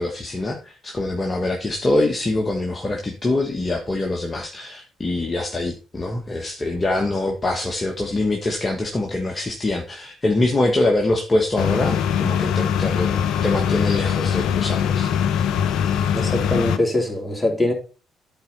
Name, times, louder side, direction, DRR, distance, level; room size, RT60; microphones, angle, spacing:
voice 1, 0.0-15.1, left 2 dB, 30° left, 1.4 m, -24 dB
sound 1, 11.6-16.8, left 8 dB, 70° left, 0.6 m, -22 dB
voice 2, 16.1-17.7, left 1 dB, 10° left, 3.4 m, -22 dB
11.5 x 4.5 x 4.0 m
hypercardioid pair, 50°, 0 cm